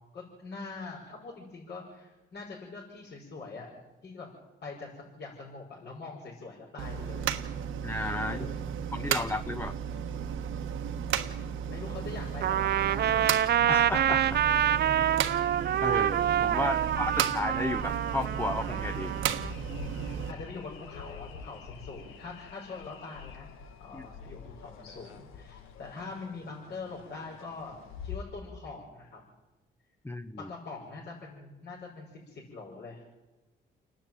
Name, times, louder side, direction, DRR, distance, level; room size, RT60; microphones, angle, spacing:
voice 1, 0.1-3.7 4.0-4.3 4.6-7.3 8.2-8.6 11.4-13.3 16.8-16.9 20.3-23.5 23.8-29.2 30.4-33.0, left 3 dB, 60° left, -5 dB, 6.1 m, -43 dB
sound 1, 6.8-20.3, right 8 dB, 80° right, 1.4 m, -34 dB
voice 2, 7.8-8.4 8.9-9.7 13.5-14.4 15.2-15.5 15.8-19.1 23.9-24.1 30.0-30.5, left 2 dB, 10° left, 11 dB, 0.8 m, -33 dB
Trumpet, 12.4-19.5, right 11 dB, 55° right, 0.6 m, -27 dB
sound 2, 13.3-28.2, left 7 dB, 90° left, 1.6 m, -48 dB
29.5 x 10.0 x 9.2 m, 1.1 s
cardioid pair, 90°, 20 cm